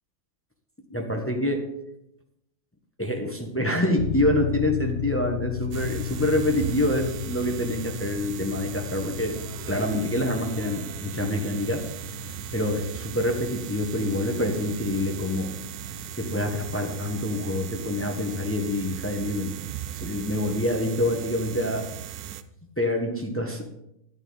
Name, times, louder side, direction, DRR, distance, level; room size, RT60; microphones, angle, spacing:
voice 1, 0.9-1.6 3.0-9.4 9.7-11.8 12.5-15.5 16.2-19.5 19.9-21.9 22.8-23.6, left 1 dB, 10° left, 2 dB, 1.0 m, -26 dB
sound 1, 4.0-20.7, left 12 dB, 45° left, 0.8 m, -36 dB
sound 2, 5.7-22.4, right 11 dB, 85° right, 1.1 m, -38 dB
11.5 x 9.3 x 4.0 m, 0.81 s
omnidirectional pair, 1.5 m